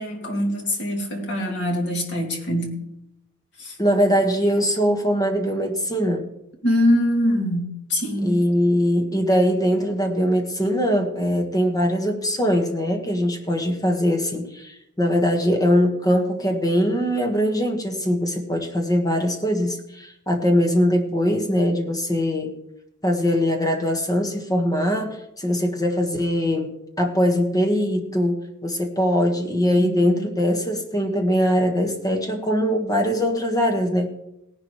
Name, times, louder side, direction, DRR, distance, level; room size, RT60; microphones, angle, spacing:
voice 1, 0.0-2.8 3.6-3.8 6.6-8.4 29.8-30.2, left 1 dB, 55° left, 1 dB, 2.5 m, -24 dB
voice 2, 3.8-6.2 8.2-22.5 23.0-26.7 27.0-34.1, equal, 15° left, 3 dB, 1.5 m, -21 dB
17.5 x 11.0 x 3.2 m, 0.86 s
head